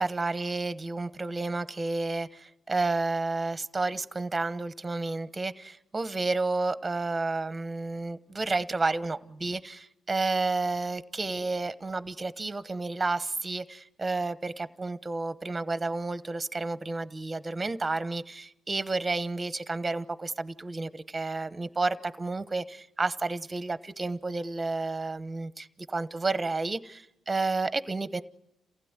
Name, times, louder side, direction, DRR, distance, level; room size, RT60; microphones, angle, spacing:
voice 1, 0.0-28.2, right 3 dB, 20° right, 1.0 m, -31 dB
28.0 x 16.0 x 9.7 m
cardioid pair, 90°, 0 cm